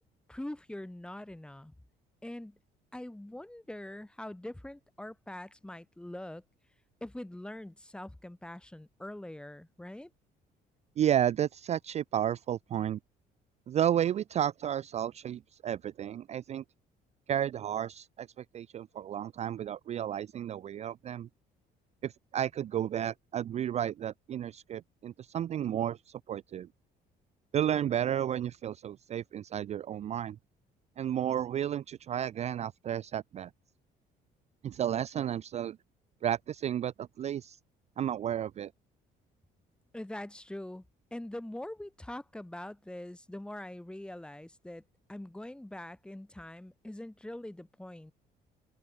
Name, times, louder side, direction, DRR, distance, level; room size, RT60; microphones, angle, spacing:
voice 1, 0.3-1.7 2.2-2.6 2.9-6.4 7.0-10.1 39.9-40.8 41.1-44.8 45.1-48.1, left 1 dB, 5° left, 1.6 m, -43 dB
voice 2, 11.0-13.0 13.7-16.6 17.3-21.3 22.0-26.7 27.5-30.4 31.0-33.5 34.6-35.8 36.2-37.6 38.0-38.7, right 10 dB, 40° right, 0.4 m, -32 dB
open air
cardioid pair, 110°, 17 cm